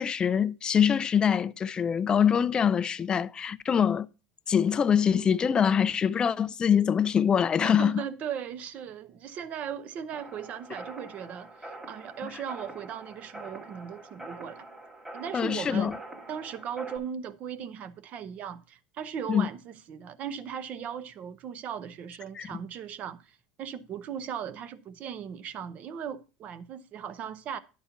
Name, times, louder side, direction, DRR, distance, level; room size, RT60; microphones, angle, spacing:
voice 1, 0.0-4.1 4.5-8.0 12.2-12.3 15.3-16.0 19.3-19.5 22.4-22.5, left 8 dB, 20° left, 0.4 m, -24 dB
voice 2, 7.6-14.6 15.1-16.0 16.3-27.6, right 8 dB, 40° right, 0.8 m, -38 dB
sound 1, 10.1-17.0, right 2 dB, 10° right, 2.3 m, -45 dB
11.0 x 4.3 x 5.8 m
cardioid pair, 145°, 4 cm